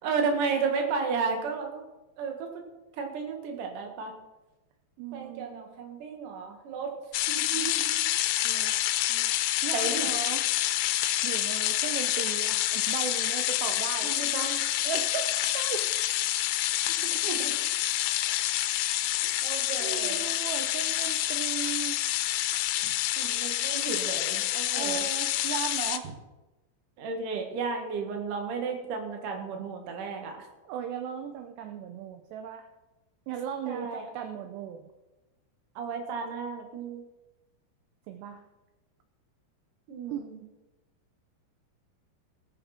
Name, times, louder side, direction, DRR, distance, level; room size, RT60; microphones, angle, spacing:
voice 1, 0.0-1.8 2.2-2.6 3.0-4.1 5.1-6.9 7.3-7.9 9.7-10.1 14.0-14.6 17.0-17.5 18.1-18.2 19.4-20.2 23.2-25.1 27.0-30.4 33.7-34.1 35.8-37.0 39.9-40.4, right 5 dB, 55° right, 3 dB, 2.7 m, -33 dB
voice 2, 5.0-5.7 8.4-8.8 9.1-9.3 9.6-10.5 11.2-14.2 14.8-15.9 19.2-22.2 22.5-22.6 24.7-26.1 30.7-32.7 33.3-34.9 38.1-38.4 40.1-40.2, right 8 dB, 80° right, 6 dB, 2.5 m, -37 dB
sound 1, 7.1-26.0, left 14 dB, 90° left, 3.3 m, -28 dB
19.0 x 9.9 x 4.4 m, 1.1 s
omnidirectional pair, 5.7 m